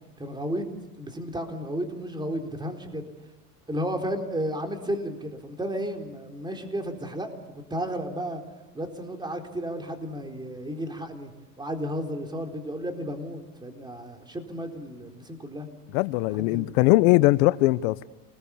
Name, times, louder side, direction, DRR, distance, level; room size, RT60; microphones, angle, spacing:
voice 1, 0.2-0.7 1.0-3.1 3.7-7.3 7.7-8.4 8.7-15.7 16.3-16.7, equal, 10° right, 3 dB, 4.0 m, -33 dB
voice 2, 15.9-18.0, left 19 dB, 55° left, 16 dB, 1.0 m, -20 dB
29.0 x 21.0 x 7.2 m, 1.1 s
hypercardioid pair, 115°, 48 cm